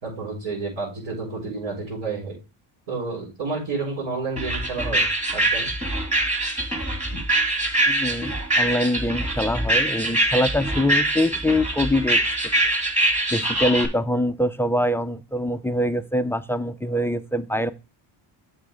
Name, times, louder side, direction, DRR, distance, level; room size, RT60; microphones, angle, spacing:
voice 1, 0.0-2.4 2.9-5.7, right 4 dB, 70° right, -7 dB, 5.1 m, -30 dB
sound 1, 4.4-13.9, right 1 dB, 15° right, 2.0 m, -23 dB
voice 2, 7.9-12.2 13.3-17.7, left 1 dB, 5° left, 10 dB, 0.4 m, -24 dB
7.6 x 6.3 x 3.4 m, 0.29 s
cardioid pair, 80°, 50 cm